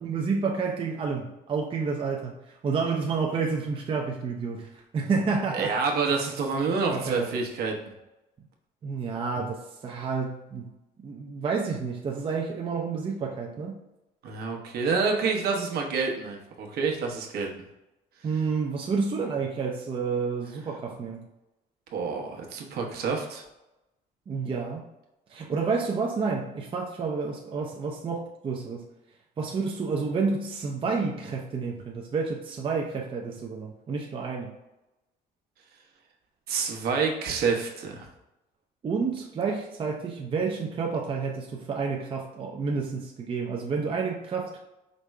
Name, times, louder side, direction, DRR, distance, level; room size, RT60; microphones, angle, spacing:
voice 1, 0.0-5.7 6.9-7.5 8.8-10.7 11.0-13.8 18.2-21.3 24.3-24.9 25.3-28.8 29.4-34.6 38.8-44.6, right 5 dB, 30° right, 0 dB, 0.5 m, -30 dB
voice 2, 5.5-7.7 14.2-17.5 21.9-23.4 36.5-38.1, right 5 dB, 65° right, 1 dB, 1.0 m, -28 dB
5.1 x 2.1 x 4.6 m, 0.94 s
cardioid pair, 110°, 17 cm